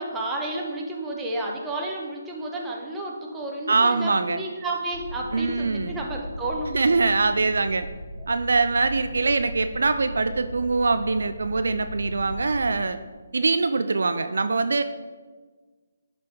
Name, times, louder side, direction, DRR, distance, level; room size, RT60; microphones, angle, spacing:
voice 1, 0.0-6.9, right 2 dB, 10° right, -2 dB, 1.2 m, -31 dB
voice 2, 3.7-4.4 5.3-6.0 6.7-7.9 8.3-13.0 13.3-14.8, right 3 dB, 70° right, 10 dB, 0.4 m, -23 dB
sound 1, 4.9-12.7, equal, 85° left, 2.0 m, -37 dB
11.0 x 4.2 x 4.8 m, 1.4 s
figure-of-eight pair, 145°, 0 cm